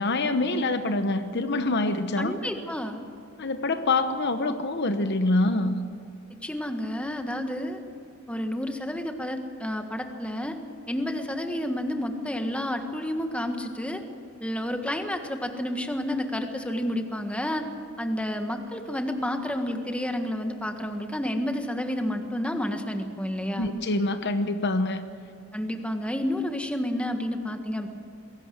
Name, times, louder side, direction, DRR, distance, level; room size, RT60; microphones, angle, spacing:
voice 1, 0.0-2.3 3.4-5.8 23.6-25.0, left 2 dB, 55° left, 9 dB, 1.0 m, -25 dB
voice 2, 2.2-3.0 6.4-7.8 8.3-10.6 10.9-14.0 14.4-17.7 18.0-23.7 25.5-27.9, left 1 dB, 5° left, 5 dB, 1.6 m, -30 dB
22.0 x 17.5 x 7.9 m, 2.5 s
head